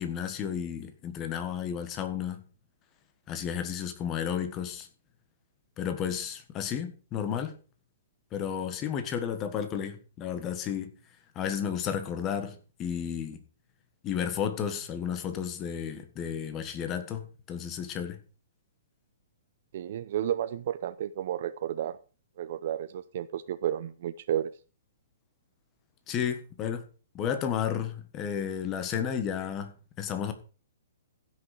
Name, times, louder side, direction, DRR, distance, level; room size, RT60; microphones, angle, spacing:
voice 1, 0.0-2.4 3.3-4.9 5.8-7.5 8.3-10.9 11.3-13.4 14.0-18.2 26.1-26.8 27.1-30.3, left 8 dB, 20° left, 1.4 m, -32 dB
voice 2, 19.7-22.0 22.4-24.5, right 10 dB, 45° right, 0.6 m, -32 dB
15.5 x 6.4 x 4.9 m
hypercardioid pair, 170°, 0 cm